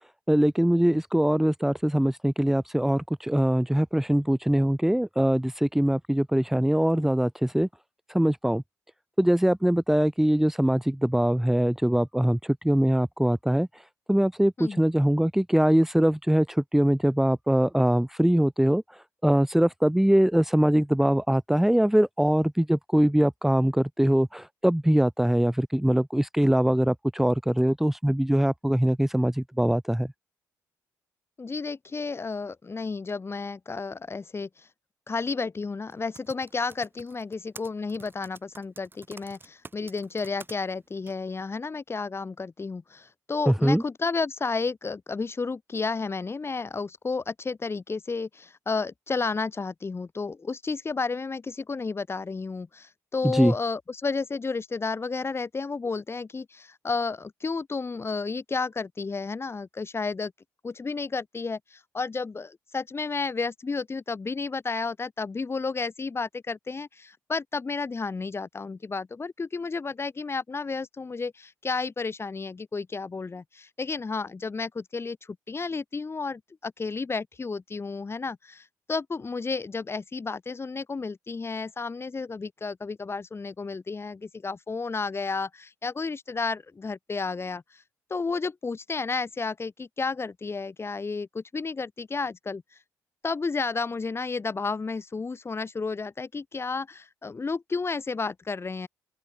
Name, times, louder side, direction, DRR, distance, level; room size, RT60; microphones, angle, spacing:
voice 1, 0.3-7.7 8.1-8.6 9.2-13.8 14.1-30.1 43.5-43.8 53.3-53.5, right 1 dB, 5° right, 1.3 m, -22 dB
voice 2, 31.4-34.7 35.1-60.3 60.6-87.8 88.1-92.6 93.2-98.9, left 4 dB, 30° left, 3.9 m, -32 dB
Typing, 35.9-40.5 41.1-41.2, right 3 dB, 25° right, 4.9 m, -47 dB
open air
figure-of-eight pair, 45°, 8 cm